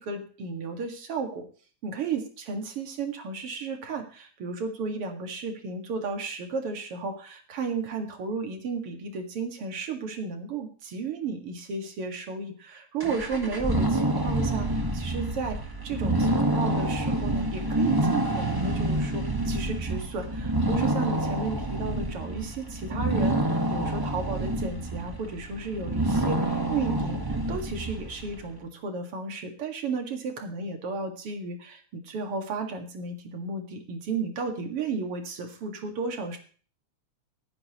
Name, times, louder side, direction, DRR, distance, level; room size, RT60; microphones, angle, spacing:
voice 1, 0.0-1.5 1.8-36.4, right 4 dB, 50° right, 5 dB, 2.8 m, -33 dB
sound 1, 13.0-28.4, right 1 dB, 20° right, 0.5 m, -27 dB
19.0 x 9.9 x 3.1 m, 0.40 s
omnidirectional pair, 3.5 m